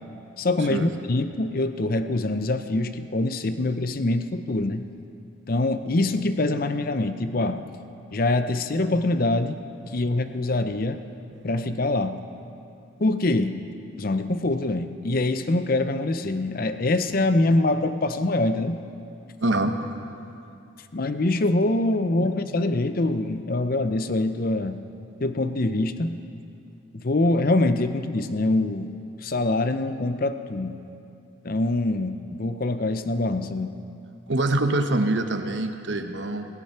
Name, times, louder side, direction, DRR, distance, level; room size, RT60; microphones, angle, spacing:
voice 1, 0.4-4.8 5.5-7.6 8.1-9.6 9.9-11.0 11.4-12.2 13.0-13.6 14.0-18.8 20.9-24.8 25.2-26.2 26.9-28.9 29.2-30.7 31.4-33.7, left 2 dB, 45° left, 10 dB, 0.6 m, -24 dB
voice 2, 19.4-20.1 34.3-36.5, right 2 dB, 60° right, 6 dB, 0.9 m, -25 dB
16.5 x 16.5 x 4.4 m, 2.6 s
head